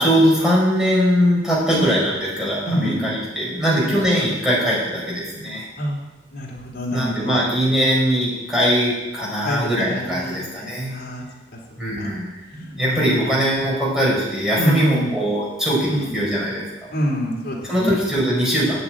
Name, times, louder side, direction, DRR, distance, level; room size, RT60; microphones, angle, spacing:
voice 1, 0.0-5.7 6.9-10.9 11.8-16.6 17.7-18.8, equal, 5° right, -6 dB, 4.9 m, -21 dB
voice 2, 2.6-3.0 3.6-3.9 5.8-6.0 6.3-7.5 9.4-11.2 12.0-12.2 12.9-13.3 14.5-15.1 15.9-16.1 16.9-17.9, equal, 55° left, -4 dB, 3.3 m, -26 dB
8.8 x 8.4 x 8.8 m, 1.1 s
head